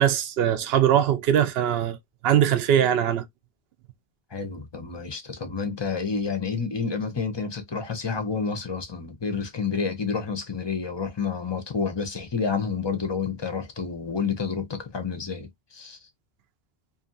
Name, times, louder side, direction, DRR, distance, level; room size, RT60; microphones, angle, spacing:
voice 1, 0.0-2.0 2.2-3.2, right 10 dB, 75° right, 0.8 m, -21 dB
voice 2, 4.3-16.0, left 5 dB, 35° left, 0.5 m, -29 dB
2.6 x 2.5 x 2.5 m
omnidirectional pair, 1.0 m